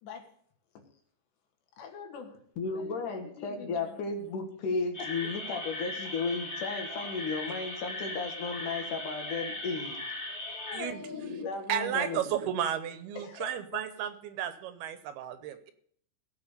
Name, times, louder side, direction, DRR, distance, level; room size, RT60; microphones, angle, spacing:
voice 1, 0.0-0.3 0.8-0.9 1.8-2.4 2.7-4.0 5.0-5.4 10.5-11.3 13.1-13.8, left 6 dB, 80° left, 4 dB, 4.4 m, -45 dB
voice 2, 2.6-10.0 11.1-12.5, left 4 dB, 55° left, 5 dB, 3.0 m, -34 dB
sound 1, 4.9-10.8, left 2 dB, 20° left, 2.1 m, -38 dB
voice 3, 11.7-15.7, right 10 dB, 75° right, 11 dB, 2.8 m, -33 dB
17.0 x 7.0 x 6.8 m, 0.62 s
omnidirectional pair, 4.8 m